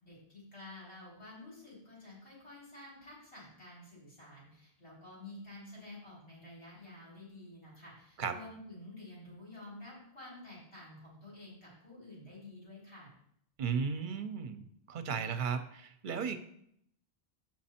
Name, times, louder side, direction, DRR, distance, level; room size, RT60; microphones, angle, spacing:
voice 1, 0.0-13.1, left 2 dB, 85° left, -6 dB, 4.2 m, -50 dB
voice 2, 13.6-16.4, right 6 dB, 55° right, 9 dB, 0.9 m, -35 dB
7.2 x 6.1 x 4.3 m, 0.71 s
omnidirectional pair, 1.1 m